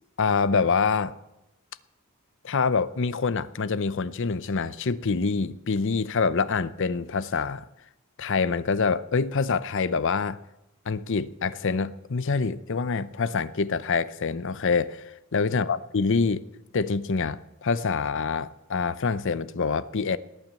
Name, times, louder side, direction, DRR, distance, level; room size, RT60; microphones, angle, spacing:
voice 1, 0.2-1.1 2.4-7.6 8.2-10.4 10.9-16.4 16.7-20.2, left 4 dB, 55° left, 0.6 m, -26 dB
19.0 x 9.1 x 7.5 m
head